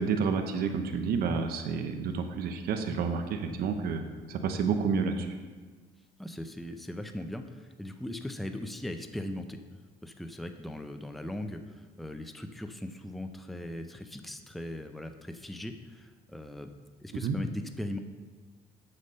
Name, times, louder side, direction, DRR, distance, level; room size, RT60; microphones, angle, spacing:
voice 1, 0.0-5.3 17.2-17.4, right 5 dB, 65° right, 7 dB, 0.8 m, -30 dB
voice 2, 6.2-9.6 10.0-16.7 17.0-18.0, left 1 dB, ahead, 7 dB, 0.5 m, -39 dB
7.1 x 6.6 x 5.4 m, 1.4 s
cardioid pair, 110°, 17 cm